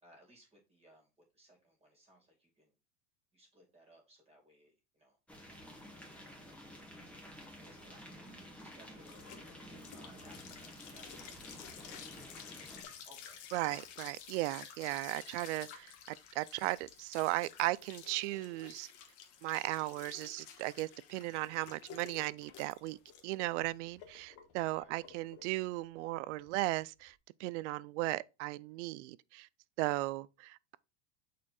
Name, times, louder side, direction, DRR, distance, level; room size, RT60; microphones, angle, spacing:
voice 1, 0.0-2.7 3.3-5.2 6.1-6.4 7.6-9.2 9.9-10.4 10.7-13.8 14.6-14.7 24.8-25.1, equal, 15° right, 2.4 m, -63 dB
sound 1, 5.3-12.8, equal, 5° left, 1.7 m, -51 dB
sound 2, 8.1-27.1, left 8 dB, 60° left, 1.5 m, -53 dB
voice 2, 13.5-18.9 19.4-23.0 23.2-29.5 29.8-30.8, right 19 dB, 75° right, 0.5 m, -36 dB
6.1 x 4.3 x 4.1 m
supercardioid pair, 125°, 36 cm